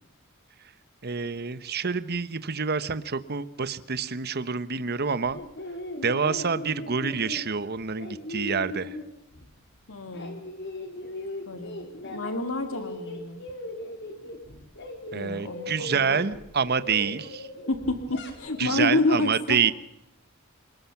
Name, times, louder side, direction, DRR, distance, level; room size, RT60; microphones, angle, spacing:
voice 1, 1.0-5.4 6.0-9.0 15.1-17.5 18.6-19.7, right 5 dB, 50° right, 14 dB, 1.1 m, -27 dB
sound 1, 5.2-9.6 9.9-12.4 12.7-18.6, left 1 dB, 60° left, 4.6 m, -39 dB
voice 2, 9.9-10.4 11.5-11.8 12.0-13.4 15.2-16.2 17.0-17.1 17.7-19.6, left 2 dB, 80° left, 7 dB, 2.2 m, -29 dB
27.5 x 19.5 x 5.9 m, 0.78 s
head